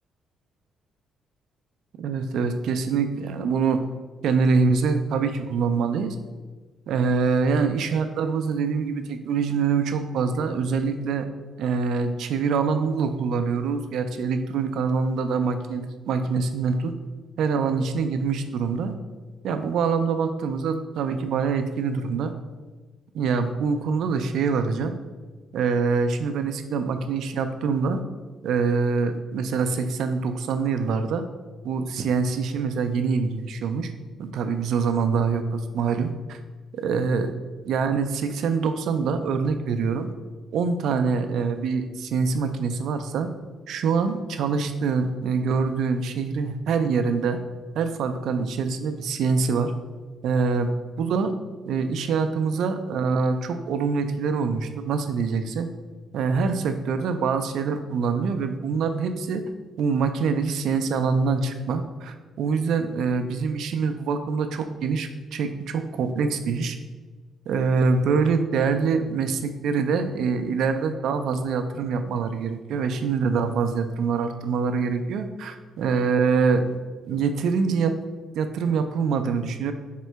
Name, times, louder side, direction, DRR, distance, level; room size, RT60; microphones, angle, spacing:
voice 1, 2.0-3.8 4.2-6.2 6.9-11.2 11.6-16.9 17.4-18.9 19.4-22.3 23.1-25.0 25.5-28.0 28.4-31.3 31.6-33.9 34.2-36.4 36.7-37.3 37.6-40.1 40.5-43.3 43.7-47.4 47.8-49.7 50.2-50.7 51.0-51.3 51.7-55.7 56.1-59.4 59.8-66.8 67.5-76.8 77.0-77.9 78.3-79.7, right 5 dB, 75° right, 8 dB, 0.3 m, -25 dB
3.6 x 2.1 x 4.4 m, 1.3 s
cardioid pair, 90°, 0 cm